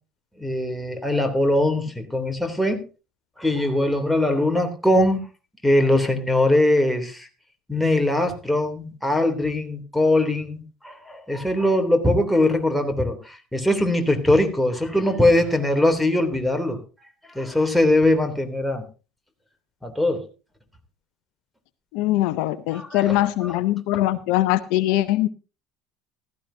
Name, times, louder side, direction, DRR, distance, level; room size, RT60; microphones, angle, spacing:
voice 1, 0.4-2.8 3.4-5.2 5.6-7.3 7.7-16.8 17.3-18.8 19.8-20.3 22.7-23.6, left 1 dB, ahead, 3.2 m, -21 dB
voice 2, 21.9-25.3, left 15 dB, 65° left, 0.7 m, -22 dB
15.5 x 14.0 x 2.8 m
hypercardioid pair, 70°, 0 cm